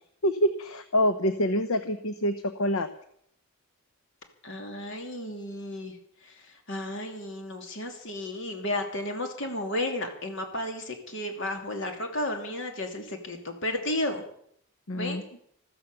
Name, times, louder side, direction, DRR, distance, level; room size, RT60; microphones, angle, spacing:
voice 1, 0.2-2.9 14.9-15.2, equal, 70° left, 10 dB, 0.9 m, -26 dB
voice 2, 4.4-6.0 6.2-14.2 14.9-15.2, left 1 dB, 55° left, 4 dB, 3.0 m, -33 dB
14.0 x 14.0 x 6.8 m, 0.68 s
head